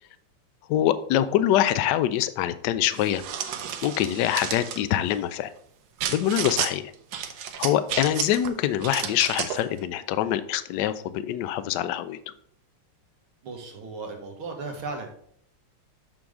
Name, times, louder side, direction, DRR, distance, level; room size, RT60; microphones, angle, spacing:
voice 1, 0.7-3.2 3.8-5.5 6.1-6.9 7.6-12.2, left 11 dB, 75° left, 13 dB, 1.0 m, -24 dB
sound 1, 2.9-4.8 6.0-6.7 7.1-8.5 8.8-9.6, right 8 dB, 65° right, 1.1 m, -32 dB
voice 2, 13.4-15.1, right 3 dB, 85° right, 3 dB, 2.1 m, -36 dB
6.4 x 6.0 x 3.5 m, 0.62 s
omnidirectional pair, 2.2 m